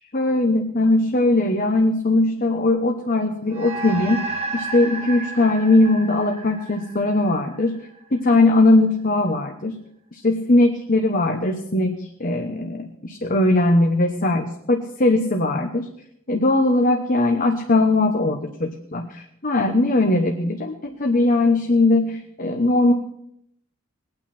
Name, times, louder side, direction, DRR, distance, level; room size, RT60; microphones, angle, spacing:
voice 1, 0.1-4.2 4.5-7.8 8.1-9.8 10.1-15.9 16.3-22.9, left 2 dB, 40° left, 3 dB, 1.1 m, -20 dB
sound 1, 3.5-8.2, right 3 dB, 30° right, 1.2 m, -32 dB
21.0 x 9.0 x 4.4 m, 0.73 s
head